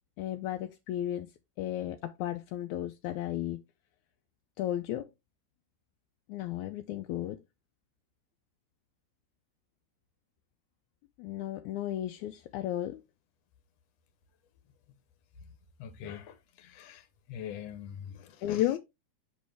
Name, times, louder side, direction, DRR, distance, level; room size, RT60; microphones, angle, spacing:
voice 1, 0.2-1.3 1.6-3.6 4.6-5.0 6.3-7.4 11.2-13.0 18.4-18.8, left 13 dB, 80° left, 1.9 m, -33 dB
voice 2, 15.8-18.6, left 9 dB, 65° left, 2.0 m, -44 dB
6.4 x 5.2 x 3.4 m
omnidirectional pair, 3.5 m